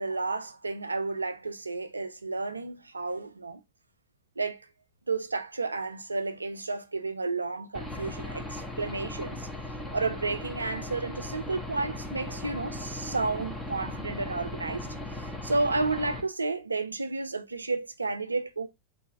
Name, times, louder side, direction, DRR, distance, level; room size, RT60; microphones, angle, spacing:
voice 1, 0.0-3.6 4.4-4.6 5.1-9.5 9.9-18.7, right 3 dB, 80° right, 0.5 m, -32 dB
Aircraft / Engine, 7.7-16.2, left 2 dB, 5° left, 1.1 m, -38 dB
4.1 x 3.3 x 3.0 m
figure-of-eight pair, 90°, 0 cm